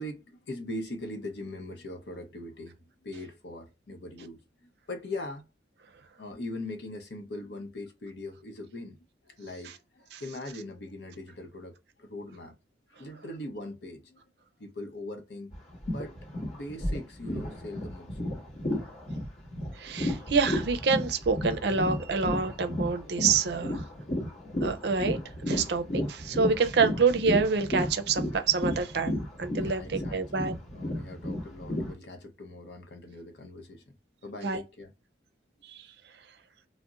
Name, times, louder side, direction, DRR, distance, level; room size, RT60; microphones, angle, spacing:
voice 1, 0.0-5.4 6.2-12.6 12.9-14.3 14.6-15.5 15.9-16.1 16.5-18.2 29.5-34.0 34.2-34.9, left 1 dB, 70° left, 0.7 m, -41 dB
sound 1, 15.5-31.9, left 1 dB, 35° left, 1.0 m, -33 dB
voice 2, 19.8-23.8 24.6-25.2 25.5-29.1 29.4-30.5 34.4-34.6 35.7-35.8, right 5 dB, 60° right, 0.4 m, -27 dB
2.4 x 2.0 x 3.9 m
head